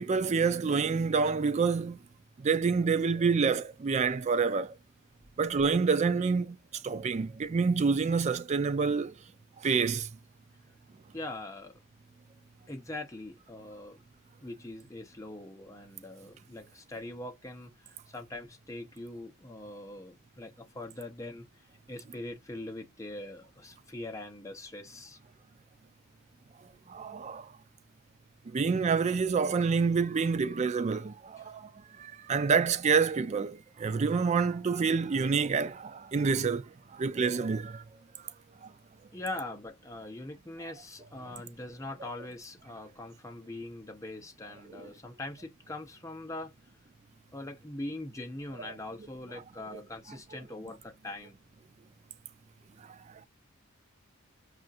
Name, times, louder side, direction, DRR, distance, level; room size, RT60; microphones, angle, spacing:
voice 1, 0.0-2.0 2.4-4.7 5.4-9.1 9.6-10.1 26.9-27.5 28.5-31.7 32.0-36.7 36.9-37.8 38.6-38.7 44.7-44.9, right 5 dB, 35° right, 0.3 m, -27 dB
voice 2, 11.1-11.8 12.7-14.0 14.4-21.5 21.9-25.2 31.4-31.5 39.1-46.5 47.3-51.4, left 2 dB, 15° left, 0.8 m, -42 dB
5.1 x 2.5 x 2.6 m
head